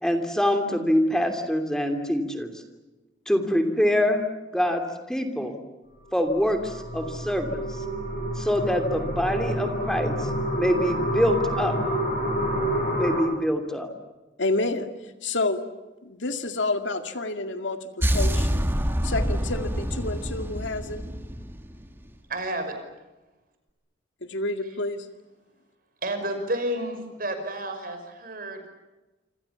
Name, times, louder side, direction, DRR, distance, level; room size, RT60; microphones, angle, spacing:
voice 1, 0.0-2.5 3.3-4.2 4.5-5.6 6.1-7.6 8.4-11.8 13.0-13.9, equal, 5° left, 5 dB, 2.9 m, -25 dB
sound 1, 6.2-13.2, equal, 45° left, 6.4 m, -28 dB
voice 2, 14.4-14.9 15.2-15.7 16.0-18.6 19.0-21.1 24.2-25.1, left 2 dB, 80° left, 7 dB, 2.3 m, -29 dB
sound 2, 18.0-22.1, equal, 10° right, 1.8 m, -26 dB
voice 3, 22.3-22.8 26.0-28.7, right 1 dB, 50° right, 7 dB, 5.7 m, -30 dB
27.5 x 26.5 x 7.2 m, 1.1 s
head